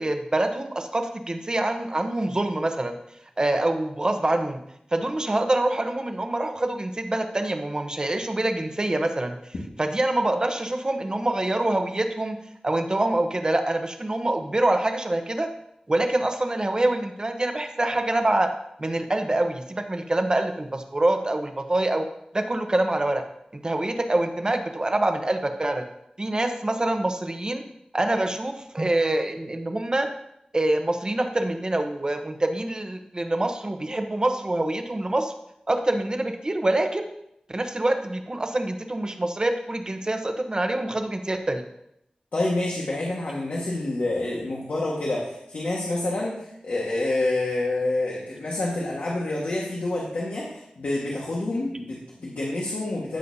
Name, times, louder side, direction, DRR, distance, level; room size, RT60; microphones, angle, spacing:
voice 1, 0.0-2.9 3.4-4.6 4.9-9.3 9.8-12.4 12.6-15.5 15.9-18.5 18.8-22.0 22.3-23.2 23.6-25.8 26.2-27.6 27.9-30.1 30.5-35.3 35.7-37.1 37.5-41.6, right 1 dB, 30° right, 6 dB, 1.0 m, -25 dB
voice 2, 42.3-53.2, left 2 dB, 75° left, -4 dB, 1.6 m, -28 dB
15.0 x 6.4 x 2.8 m, 0.78 s
wide cardioid pair, 85°, 3 cm